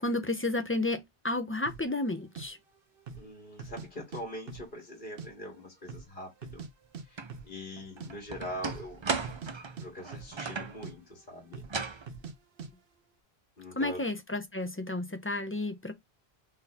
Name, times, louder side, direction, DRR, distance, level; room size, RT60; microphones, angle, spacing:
voice 1, 0.0-2.6 13.8-15.9, left 2 dB, 20° left, 0.3 m, -32 dB
sound 1, 1.7-1.9 2.4-2.5 3.0-3.3 3.6-4.2 4.5-5.3 5.5-5.6 5.9-6.7 6.9-7.0 7.3-7.5 7.8-8.1 8.6-8.9 9.2-10.6 10.8-10.9 11.5-11.8 12.1-12.3 12.6-12.7, right 5 dB, 65° right, 0.9 m, -43 dB
voice 2, 3.2-6.7 7.0-9.2 9.8-11.7 13.6-14.0, left 1 dB, 55° left, 1.5 m, -43 dB
sound 2, 7.2-7.3 7.8-10.8 11.6-12.1, right 4 dB, 35° right, 0.5 m, -36 dB
3.8 x 2.7 x 4.0 m
omnidirectional pair, 1.1 m